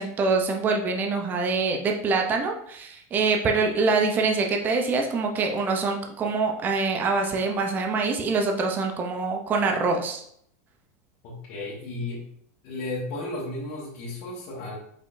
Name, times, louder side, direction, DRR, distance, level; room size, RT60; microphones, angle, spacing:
voice 1, 0.0-10.2, right 4 dB, 20° right, 3 dB, 0.6 m, -25 dB
voice 2, 11.2-12.3 12.6-14.8, left 2 dB, 50° left, -5 dB, 1.3 m, -34 dB
5.1 x 4.0 x 2.6 m, 0.67 s
supercardioid pair, 145°, 8 cm